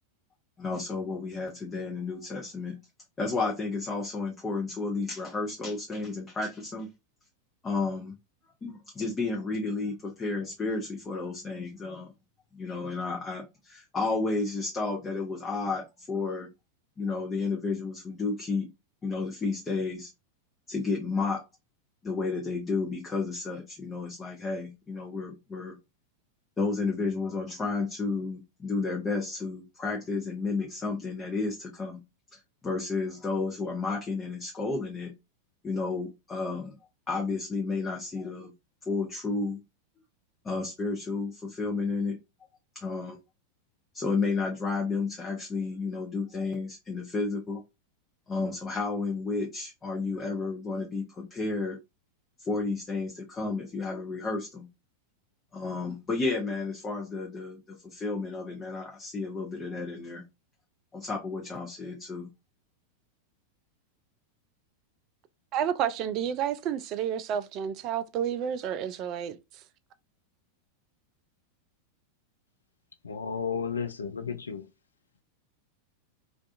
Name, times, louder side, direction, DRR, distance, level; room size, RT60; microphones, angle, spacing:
voice 1, 0.6-2.8 3.2-6.9 7.6-8.1 8.6-12.1 12.5-16.5 17.0-18.7 19.0-20.1 20.7-21.4 22.0-25.8 26.6-32.0 32.3-35.1 35.6-36.8 37.1-38.5 38.9-39.6 40.4-42.2 42.7-43.2 43.9-47.6 48.3-51.8 52.4-54.7 55.5-60.2 60.9-62.3, left 3 dB, 20° left, 0.6 m, -32 dB
voice 2, 65.5-69.4, right 9 dB, 40° right, 0.3 m, -30 dB
voice 3, 73.0-74.7, left 6 dB, 75° left, 0.3 m, -33 dB
2.5 x 2.3 x 2.4 m
figure-of-eight pair, 90°, 0 cm